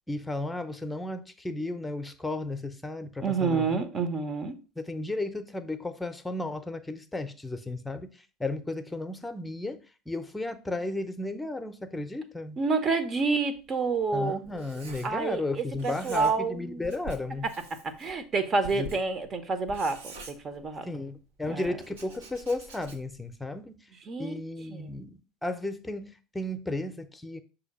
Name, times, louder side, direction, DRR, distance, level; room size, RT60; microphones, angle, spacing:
voice 1, 0.1-3.8 4.8-8.1 8.4-9.8 10.1-12.6 14.1-17.5 18.7-18.9 20.9-23.8 24.2-27.4, left 2 dB, 10° left, 0.8 m, -34 dB
voice 2, 3.2-4.5 12.6-14.4 15.0-16.9 17.7-20.9 21.5-21.7 24.1-24.4 24.7-24.9, right 4 dB, 40° right, 0.9 m, -29 dB
Writing, 13.6-15.5 15.7-16.6 16.8-21.0 21.6-23.3, right 2 dB, 80° right, 1.0 m, -46 dB
6.3 x 2.8 x 5.4 m
hypercardioid pair, 70°, 0 cm